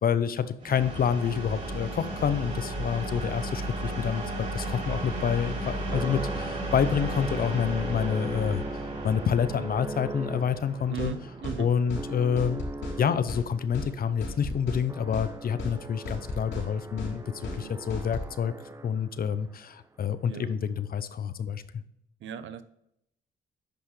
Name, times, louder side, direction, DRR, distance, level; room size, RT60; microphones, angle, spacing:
voice 1, 0.0-8.7 9.0-11.1 11.6-12.6 13.0-17.2 17.5-18.5 18.8-21.8, left 7 dB, 50° left, 12 dB, 0.7 m, -28 dB
sound 1, 0.6-12.2, right 1 dB, 35° right, 3.4 m, -35 dB
sound 2, 3.6-19.3, right 2 dB, 15° right, 0.5 m, -41 dB
voice 2, 10.9-11.7 17.4-17.8 20.2-20.5 22.2-22.6, right 7 dB, 70° right, 12 dB, 0.8 m, -37 dB
sound 3, 11.0-11.1 11.4-11.6 11.9-12.1 12.4-13.0 13.3-13.4 13.7-13.9 14.2-14.8 15.1-15.3 15.6-15.7 16.0-16.7 17.0-17.1 17.4-17.6 17.9-18.3, left 2 dB, 70° left, 3.1 m, -35 dB
10.5 x 5.5 x 3.3 m, 0.78 s
cardioid pair, 90°, 20 cm